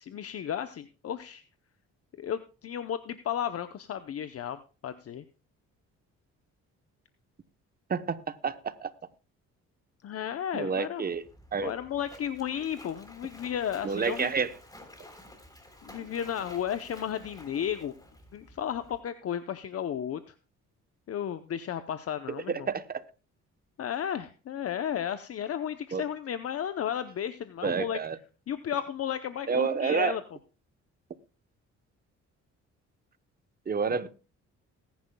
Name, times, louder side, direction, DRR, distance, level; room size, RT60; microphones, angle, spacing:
voice 1, 0.0-1.4 2.2-5.2 10.0-11.0 11.6-14.3 15.8-17.9 18.3-20.3 21.1-22.7 23.8-28.0 28.5-30.2, left 9 dB, 50° left, 0.7 m, -33 dB
voice 2, 7.9-8.9 10.5-11.2 11.5-11.7 13.8-14.5 22.3-23.0 25.9-26.0 27.6-28.2 29.5-30.2 33.7-34.1, right 5 dB, 30° right, 0.9 m, -29 dB
Splash splatter, 11.1-19.0, left 1 dB, 10° left, 3.5 m, -51 dB
20.0 x 10.5 x 2.3 m
cardioid pair, 90°, 30 cm